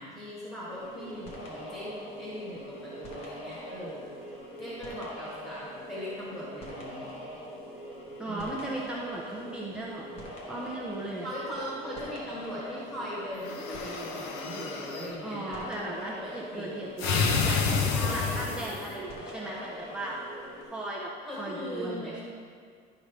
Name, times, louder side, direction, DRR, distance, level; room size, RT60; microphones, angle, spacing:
voice 1, 0.0-4.1 4.6-7.1 8.2-8.6 11.2-15.9 16.2-16.9 17.9-18.4 21.2-22.2, equal, 15° left, -8 dB, 1.4 m, -39 dB
sound 1, 0.7-20.6, equal, 35° left, 1.1 m, -43 dB
voice 2, 8.2-11.3 15.2-20.2 20.6-21.1 21.4-22.2, right 1 dB, 5° right, -5 dB, 0.5 m, -37 dB
sound 2, 13.4-15.1 17.0-18.9, left 5 dB, 70° left, 0.6 m, -29 dB
11.5 x 5.0 x 3.2 m, 2.2 s
cardioid pair, 180°, 18 cm